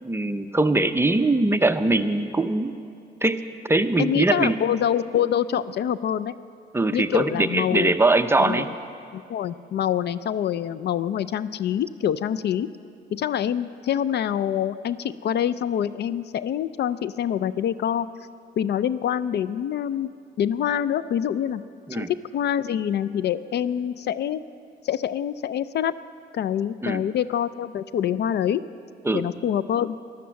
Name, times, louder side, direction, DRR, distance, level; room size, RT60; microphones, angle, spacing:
voice 1, 0.0-2.7 3.2-3.4 3.7-4.6 6.7-8.7 21.9-22.1 26.8-27.0 29.0-29.3, right 2 dB, 10° right, 9 dB, 0.6 m, -21 dB
voice 2, 4.0-6.4 6.9-8.0 8.4-8.7 9.1-12.7 13.1-18.1 18.6-20.1 20.4-21.6 21.9-24.4 24.8-25.9 26.3-28.6 29.1-30.0, left 9 dB, 60° left, 15 dB, 0.4 m, -25 dB
14.0 x 11.5 x 6.9 m, 2.4 s
cardioid pair, 90°, 20 cm